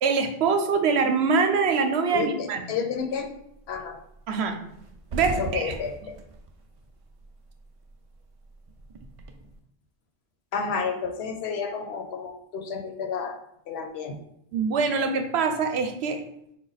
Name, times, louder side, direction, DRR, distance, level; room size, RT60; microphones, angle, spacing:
voice 1, 0.0-2.6 4.3-4.6 5.1-5.7 14.5-16.2, right 5 dB, 85° right, 6 dB, 0.9 m, -24 dB
voice 2, 2.1-3.3 3.7-4.0 5.4-6.2 10.5-13.4 13.7-14.2 14.9-15.0, left 5 dB, 75° left, 5 dB, 0.9 m, -31 dB
sound 1, 3.0-3.3 3.7-3.9 4.1-4.3 4.6-7.6 7.9-9.5, right 2 dB, 50° right, 0.4 m, -37 dB
4.8 x 2.2 x 3.9 m, 0.76 s
omnidirectional pair, 1.1 m